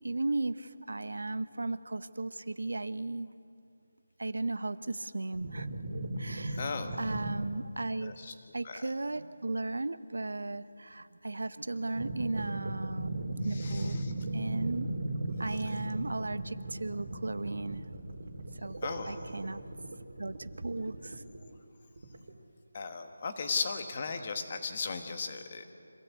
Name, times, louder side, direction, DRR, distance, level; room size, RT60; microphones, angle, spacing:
voice 1, 0.0-3.3 4.2-5.7 6.2-6.7 7.0-8.1 8.5-14.0 14.3-14.9 15.4-17.8 18.6-18.8 19.1-19.6 20.2-21.2, right 2 dB, 85° right, 14 dB, 1.0 m, -36 dB
sound 1, 5.3-7.5 11.9-21.4 22.0-22.3, right 1 dB, 50° right, 3.1 m, -37 dB
voice 2, 6.5-7.0 8.0-8.3 8.6-8.9 13.5-14.1 15.5-15.8 18.8-19.2 22.7-25.7, left 4 dB, 25° left, 6 dB, 1.4 m, -37 dB
26.0 x 17.0 x 8.4 m, 2.5 s
figure-of-eight pair, 175°, 0 cm